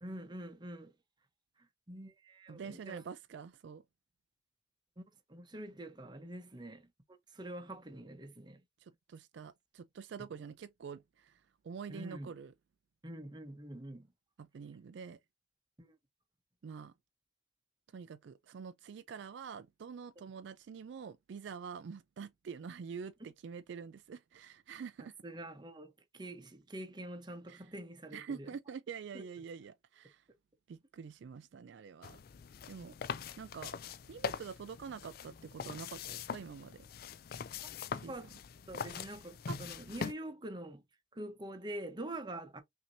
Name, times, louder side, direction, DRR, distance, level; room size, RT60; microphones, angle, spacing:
voice 1, 0.0-0.9 1.9-3.0 5.0-5.1 5.3-6.9 7.3-8.6 11.9-12.3 13.0-14.1 15.8-15.9 25.2-28.5 29.1-29.2 38.1-38.3 38.7-40.8 41.1-42.6, right 1 dB, 20° right, 0.8 m, -45 dB
voice 2, 2.5-3.8 8.8-12.5 14.4-15.2 16.6-16.9 17.9-25.1 27.5-27.7 28.1-30.2 30.7-32.2 32.7-32.9 33.4-33.8 34.1-36.8 38.0-38.1 39.5-39.6, right 6 dB, 65° right, 0.3 m, -46 dB
sound 1, 32.0-40.1, left 6 dB, 50° left, 0.3 m, -42 dB
5.8 x 2.8 x 2.7 m
head